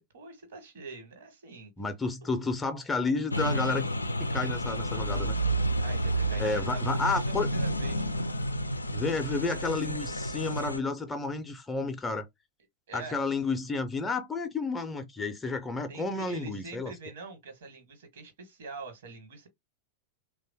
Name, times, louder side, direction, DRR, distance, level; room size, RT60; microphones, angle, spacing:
voice 1, 0.0-1.7 2.2-2.5 5.8-8.1 12.9-13.2 15.9-19.5, right 3 dB, 60° right, 1.3 m, -44 dB
voice 2, 1.8-3.9 4.3-5.4 6.4-7.5 8.9-12.3 12.9-16.9, left 3 dB, 15° left, 0.5 m, -31 dB
sound 1, 3.3-10.8, right 1 dB, 80° left, 0.3 m, -30 dB
3.2 x 2.2 x 2.7 m
figure-of-eight pair, 90°, 0 cm